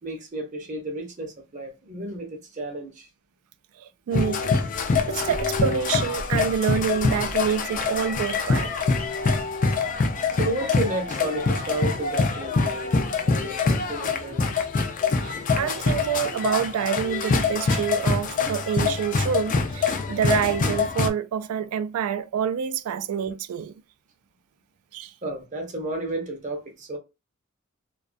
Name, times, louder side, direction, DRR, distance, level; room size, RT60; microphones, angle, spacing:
voice 1, 0.0-3.1 10.0-14.5 25.2-27.0, right 2 dB, 35° right, 0.6 m, -32 dB
voice 2, 3.8-4.6 5.1-8.8 15.2-23.7 24.9-25.1, right 8 dB, 75° right, 0.3 m, -27 dB
sound 1, 4.1-21.1, left 4 dB, 35° left, 0.3 m, -25 dB
2.3 x 2.2 x 2.4 m
head